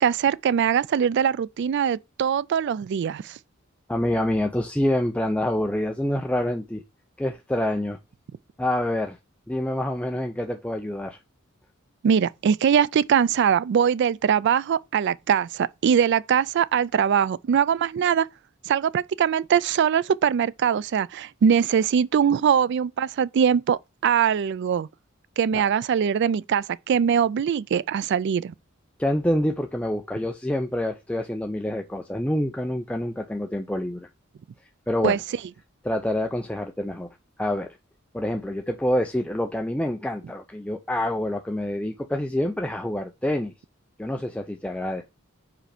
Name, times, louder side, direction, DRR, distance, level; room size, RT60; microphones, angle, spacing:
voice 1, 0.0-3.4 12.0-18.3 18.7-24.9 25.4-28.5 35.0-35.2, right 7 dB, 60° right, 0.3 m, -22 dB
voice 2, 3.9-6.8 7.2-8.0 8.6-9.2 9.5-11.2 25.5-25.6 29.0-34.1 34.9-35.2 35.8-37.1 37.4-37.8 38.1-43.5 44.0-45.0, left 1 dB, 5° left, 0.5 m, -27 dB
4.9 x 4.4 x 5.0 m
head